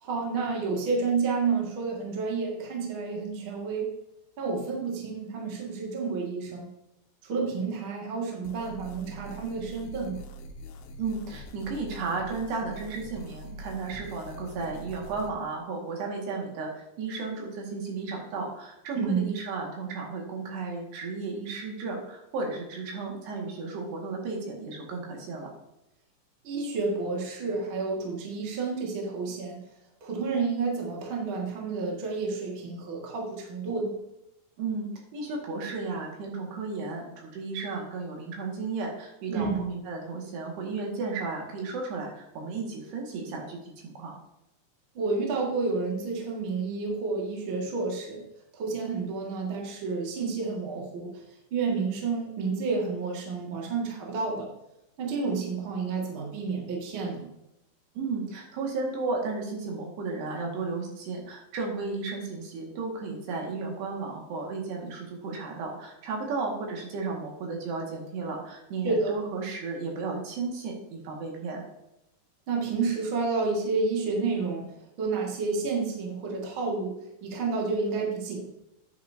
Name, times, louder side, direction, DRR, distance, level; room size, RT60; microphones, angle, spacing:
voice 1, 0.0-3.9 4.4-6.7 7.2-10.2 18.9-19.3 26.4-29.6 30.0-33.9 39.3-39.6 44.9-48.2 48.5-51.1 51.5-54.5 55.0-57.3 68.8-69.1 72.5-74.6 75.0-78.5, right 4 dB, 40° right, -2 dB, 2.0 m, -30 dB
sound 1, 8.4-15.3, right 1 dB, 75° left, 2.5 m, -44 dB
voice 2, 11.0-25.5 34.6-44.1 58.0-71.7, right 4 dB, 75° right, 0 dB, 4.0 m, -34 dB
10.0 x 9.4 x 2.8 m, 0.88 s
omnidirectional pair, 5.0 m